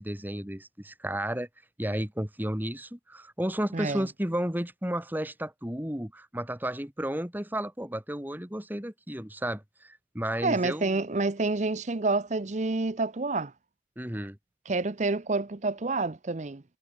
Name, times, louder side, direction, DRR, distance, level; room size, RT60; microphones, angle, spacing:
voice 1, 0.0-1.5 1.8-11.0 14.0-14.4, right 1 dB, 10° right, 2.3 m, -33 dB
voice 2, 3.7-4.0 10.4-13.5 14.7-16.6, right 3 dB, 40° right, 0.8 m, -28 dB
head